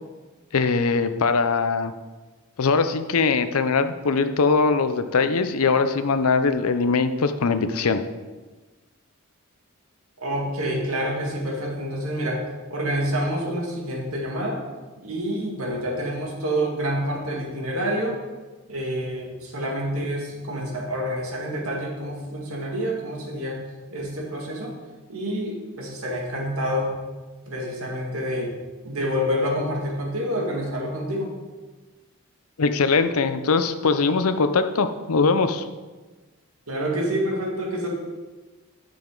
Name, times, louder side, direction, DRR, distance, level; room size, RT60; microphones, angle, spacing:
voice 1, 0.5-1.9 2.6-8.0 32.6-35.6, left 4 dB, 85° left, 10 dB, 0.6 m, -21 dB
voice 2, 10.2-14.6 15.0-18.2 18.7-23.6 23.9-24.7 25.1-26.9 27.5-28.5 28.8-31.3 36.7-37.9, equal, 75° right, -1 dB, 2.1 m, -27 dB
11.0 x 6.8 x 3.9 m, 1.3 s
head